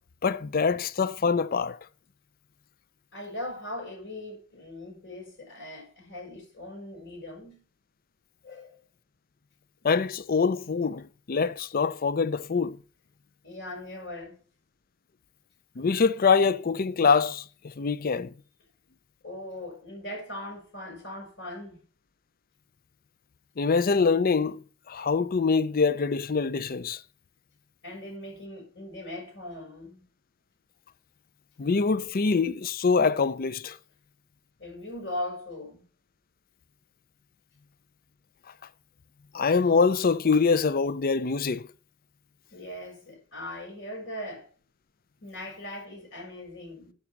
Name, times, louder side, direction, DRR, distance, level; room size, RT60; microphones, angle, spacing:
voice 1, 0.2-1.8 9.8-12.8 15.8-18.3 23.6-27.0 31.6-33.8 39.3-41.7, left 5 dB, 40° left, 0.5 m, -24 dB
voice 2, 3.1-7.6 8.4-8.8 13.4-14.4 19.2-21.8 27.8-30.0 34.6-35.8 42.5-44.5 45.2-46.9, left 1 dB, 60° left, 5.3 m, -39 dB
9.7 x 6.0 x 7.2 m
head